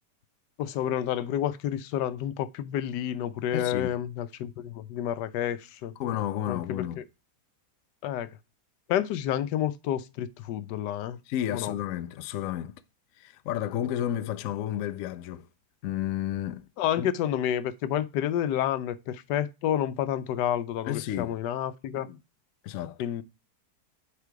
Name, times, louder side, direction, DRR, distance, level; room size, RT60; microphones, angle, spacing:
voice 1, 0.6-5.9 6.5-7.0 8.0-8.4 8.9-11.2 11.5-11.7 16.8-22.2 23.0-23.2, left 10 dB, 90° left, 1.3 m, -29 dB
voice 2, 3.5-3.9 6.0-7.0 11.3-12.8 13.2-15.5 15.8-16.7 17.0-17.1 20.9-21.3 22.6-23.0, left 11 dB, 70° left, 0.8 m, -31 dB
8.4 x 3.7 x 4.6 m
omnidirectional pair, 1.8 m